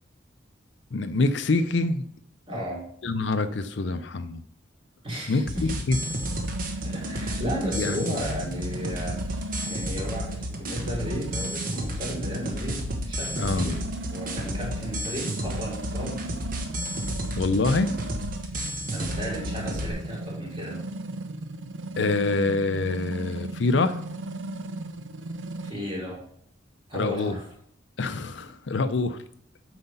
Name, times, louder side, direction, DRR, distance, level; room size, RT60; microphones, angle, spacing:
voice 1, 0.9-2.0 3.0-4.4 5.3-6.0 7.7-8.1 13.4-13.8 17.4-18.0 22.0-24.0 26.9-27.4 28.0-29.2, left 3 dB, 70° left, 11 dB, 0.5 m, -25 dB
voice 2, 2.5-2.8 5.0-5.8 6.8-13.8 14.1-16.2 18.9-20.8 25.6-26.2 26.9-27.4, equal, 30° right, -4 dB, 3.1 m, -34 dB
sound 1, 5.5-19.9, equal, 45° right, 1.2 m, -32 dB
sound 2, 5.9-25.7, right 2 dB, 80° right, 0.6 m, -36 dB
8.0 x 4.9 x 5.5 m, 0.66 s
head